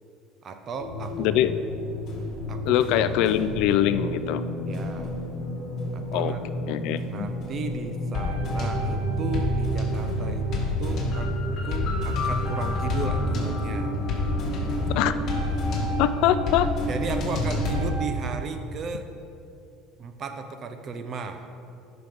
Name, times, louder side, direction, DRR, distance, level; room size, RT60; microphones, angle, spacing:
voice 1, 0.4-1.3 2.5-3.1 4.7-5.1 5.9-6.4 7.0-10.5 10.8-11.3 11.6-13.9 14.7-15.1 16.9-19.1 20.0-21.4, right 4 dB, 35° right, 7 dB, 0.7 m, -35 dB
sound 1, 0.8-17.9, left 1 dB, 40° left, 2.0 m, -28 dB
voice 2, 1.2-1.5 2.7-4.4 6.1-6.3 6.7-7.0 15.0-15.1 16.0-16.7, left 11 dB, 65° left, 12 dB, 0.4 m, -22 dB
13.0 x 6.1 x 3.6 m, 2.5 s
cardioid pair, 150°, 0 cm